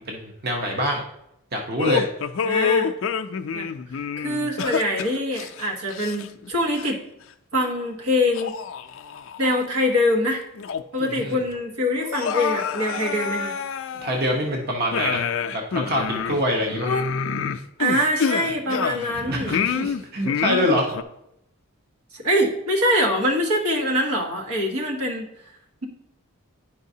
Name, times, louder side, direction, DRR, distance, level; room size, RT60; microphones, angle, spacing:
voice 1, 0.1-1.0 1.5-2.1 11.1-11.4 14.0-16.9 19.1-20.9, equal, 45° right, 0 dB, 0.9 m, -25 dB
sound 1, 1.8-6.5 6.8-7.0 7.6-7.7 8.3-9.6 10.0-10.1 10.6-11.1 11.4-11.5 12.0-14.4 14.9-19.2 19.5-21.0, left 6 dB, 60° left, 0.4 m, -27 dB
voice 2, 2.4-2.9 3.5-3.7 4.2-7.0 7.5-8.6 9.4-10.4 10.9-13.5 16.8-17.1 17.8-19.6 22.1-25.3, left 1 dB, 85° right, 0 dB, 1.3 m, -24 dB
10.5 x 4.8 x 2.7 m, 0.80 s
head